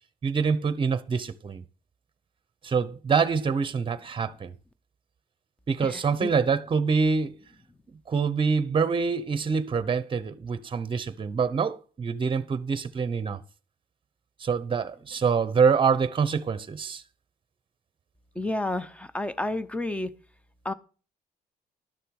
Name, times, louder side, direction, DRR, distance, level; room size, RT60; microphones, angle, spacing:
voice 1, 0.2-1.6 2.6-4.5 5.7-7.3 8.1-13.4 14.4-17.0, right 5 dB, 30° right, 0.8 m, -25 dB
voice 2, 18.4-20.1 20.6-20.7, left 2 dB, 5° left, 0.7 m, -30 dB
11.5 x 6.7 x 4.8 m
cardioid pair, 115°, 16 cm